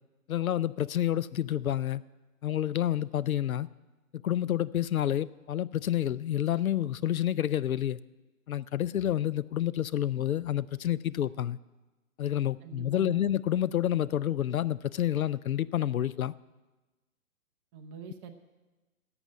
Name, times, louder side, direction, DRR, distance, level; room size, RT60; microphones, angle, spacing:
voice 1, 0.3-2.0 2.4-3.7 4.1-8.0 8.5-11.6 12.2-16.3, left 11 dB, 70° left, 0.5 m, -29 dB
voice 2, 12.6-13.2 17.7-18.3, right 7 dB, 20° right, 0.8 m, -45 dB
11.0 x 8.0 x 10.0 m
figure-of-eight pair, 125°, 43 cm